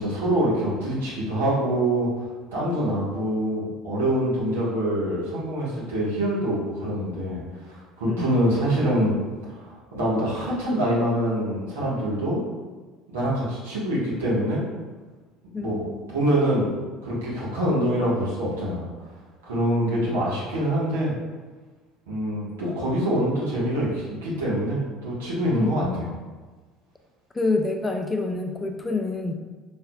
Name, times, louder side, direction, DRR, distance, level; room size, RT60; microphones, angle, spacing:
voice 1, 0.0-9.2 9.5-12.4 13.1-14.6 15.6-16.7 17.0-19.1 19.4-21.1 22.1-25.8, right 1 dB, 80° right, -7 dB, 1.3 m, -25 dB
voice 2, 15.5-16.2 25.6-26.2 27.3-29.3, left 3 dB, 20° left, 4 dB, 0.4 m, -28 dB
4.5 x 3.3 x 2.3 m, 1.3 s
hypercardioid pair, 65°, 0 cm